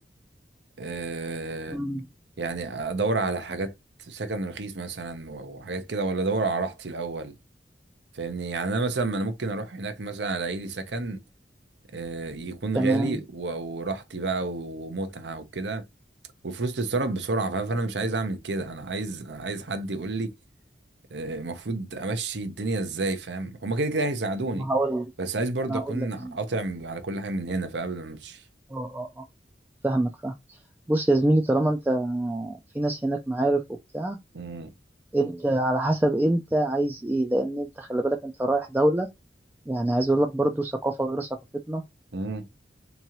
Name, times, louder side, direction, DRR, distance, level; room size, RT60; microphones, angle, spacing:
voice 1, 0.8-1.8 2.4-3.7 4.0-7.3 8.1-11.2 11.9-15.8 16.4-20.3 21.1-24.7 25.2-28.4 34.3-34.7 42.1-42.5, right 3 dB, 75° right, 0.7 m, -30 dB
voice 2, 1.7-2.0 12.8-13.2 24.5-25.1 25.7-26.3 28.7-29.2 29.8-30.6 30.9-33.6 33.9-34.2 35.1-39.1 39.7-41.3 41.7-41.8, right 1 dB, 10° right, 0.3 m, -25 dB
3.7 x 3.0 x 2.9 m
head